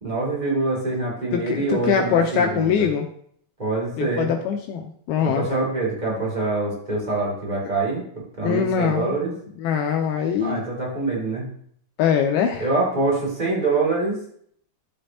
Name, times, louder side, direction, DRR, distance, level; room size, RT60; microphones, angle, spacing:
voice 1, 0.0-2.9 3.6-4.3 5.2-9.3 10.4-11.5 12.6-14.2, right 3 dB, 15° right, -4 dB, 1.4 m, -25 dB
voice 2, 1.3-3.1 4.0-5.4 8.4-9.4 9.6-10.6 12.0-12.6, left 7 dB, 80° left, 3 dB, 2.3 m, -22 dB
14.5 x 5.3 x 2.8 m, 0.64 s
omnidirectional pair, 4.9 m